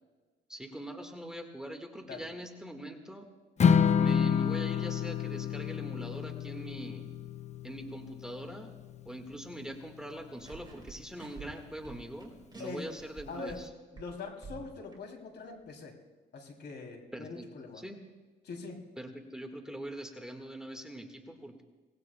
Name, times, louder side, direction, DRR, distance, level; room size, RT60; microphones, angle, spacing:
voice 1, 0.5-3.3 4.0-7.1 7.6-8.7 9.0-13.7 17.1-17.4 17.8-18.0 19.0-21.6, right 1 dB, 5° right, 4 dB, 1.6 m, -43 dB
Strum, 3.6-9.9, left 7 dB, 35° left, 0.6 m, -29 dB
sound 1, 10.4-13.7 14.0-15.0, right 5 dB, 20° right, 3.5 m, -49 dB
voice 2, 12.6-12.9 13.3-13.6 13.9-16.0 16.3-17.8 18.4-18.8, left 4 dB, 60° left, 2 dB, 3.0 m, -43 dB
24.5 x 19.0 x 2.2 m, 1.3 s
cardioid pair, 90°, 20 cm